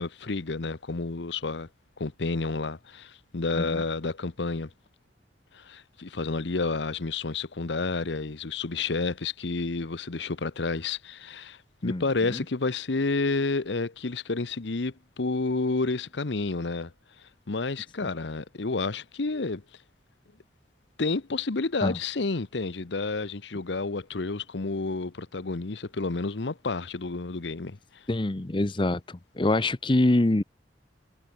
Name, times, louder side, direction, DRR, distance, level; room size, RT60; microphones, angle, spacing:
voice 1, 0.0-1.7 2.0-4.7 5.5-16.9 17.5-19.6 21.0-27.8, left 3 dB, 70° left, 0.9 m, -30 dB
voice 2, 28.1-29.0 29.4-30.4, left 2 dB, 25° left, 0.7 m, -24 dB
head